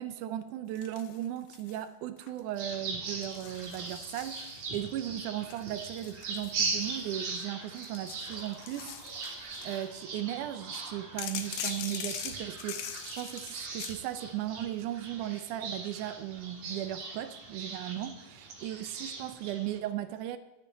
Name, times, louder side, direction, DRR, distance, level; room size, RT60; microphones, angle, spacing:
voice 1, 0.0-20.4, right 12 dB, 80° right, 2.0 m, -37 dB
sound 1, 0.8-1.8 2.2-2.6 3.2-4.9 5.5-7.2 7.7-9.8 11.2-14.0, left 9 dB, 75° left, 1.9 m, -42 dB
sound 2, 2.6-19.8, right 4 dB, 60° right, 2.6 m, -40 dB
9.1 x 6.6 x 8.7 m
omnidirectional pair, 3.8 m